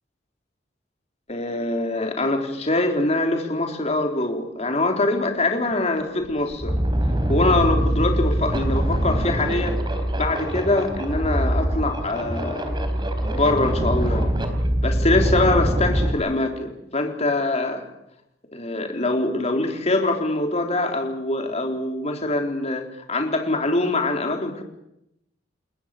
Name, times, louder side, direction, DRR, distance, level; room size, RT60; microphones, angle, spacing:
voice 1, 1.3-6.8 7.3-9.8 10.1-12.9 13.3-14.3 14.8-17.8 18.5-24.6, left 2 dB, 35° left, 3 dB, 3.8 m, -23 dB
sound 1, 5.7-5.8 6.2-16.1, right 1 dB, 25° right, 3.9 m, -23 dB
29.5 x 21.0 x 6.6 m, 0.81 s
head